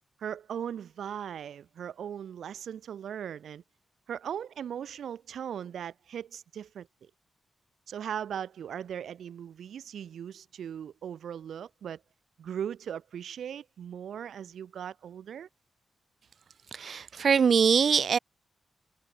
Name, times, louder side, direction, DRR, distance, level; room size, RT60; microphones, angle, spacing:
voice 1, 0.2-3.6 4.1-7.1 7.9-12.0 12.4-15.5, right 9 dB, 90° right, 0.7 m, -38 dB
voice 2, 16.7-18.2, right 6 dB, 65° right, 0.4 m, -23 dB
cardioid pair, 95°, 0 cm